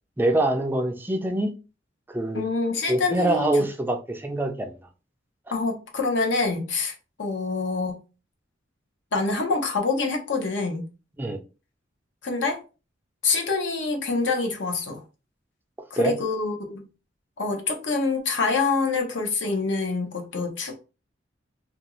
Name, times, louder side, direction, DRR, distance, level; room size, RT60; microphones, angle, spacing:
voice 1, 0.2-1.5 2.1-2.4 2.9-4.8 11.2-11.4 16.0-16.2, right 1 dB, 10° right, 0.3 m, -24 dB
voice 2, 2.3-3.5 5.5-6.9 7.2-8.0 9.1-10.8 12.2-12.6 13.2-15.0 15.9-16.9 17.4-20.7, left 3 dB, 65° left, 0.7 m, -26 dB
2.5 x 2.3 x 2.9 m
head